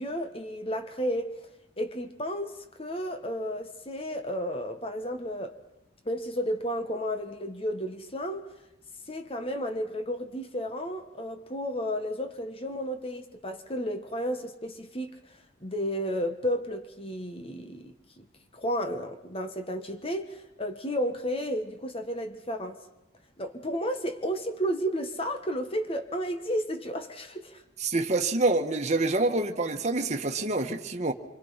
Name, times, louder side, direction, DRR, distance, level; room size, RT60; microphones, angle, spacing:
voice 1, 0.0-1.3 1.8-5.6 6.0-8.4 9.1-15.1 15.6-18.3 18.5-22.8 23.4-27.6, equal, 30° left, 1.5 m, -32 dB
voice 2, 27.8-31.1, right 2 dB, 40° right, 1.5 m, -26 dB
27.5 x 25.5 x 5.8 m
head